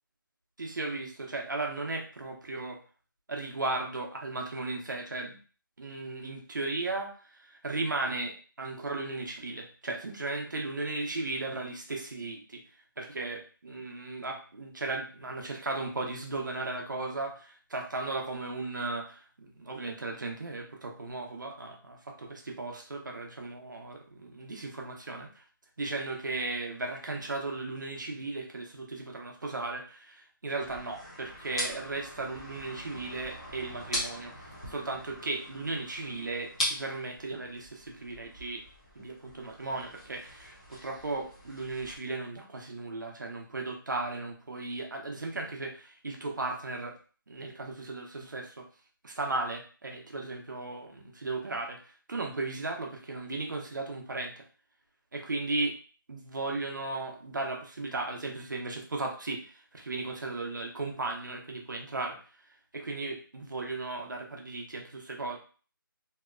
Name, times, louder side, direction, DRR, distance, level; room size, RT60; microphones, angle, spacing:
voice 1, 0.6-2.8 3.3-5.4 5.8-12.6 13.0-25.4 25.8-34.3 34.7-38.6 38.9-47.0 47.3-48.7 49.0-54.4 55.1-55.8 56.1-62.2 62.7-65.4, right 3 dB, 60° right, 2 dB, 0.7 m, -36 dB
sound 1, 30.6-42.0, equal, 15° left, 0.6 m, -41 dB
2.8 x 2.1 x 2.4 m, 0.39 s
figure-of-eight pair, 175°, 12 cm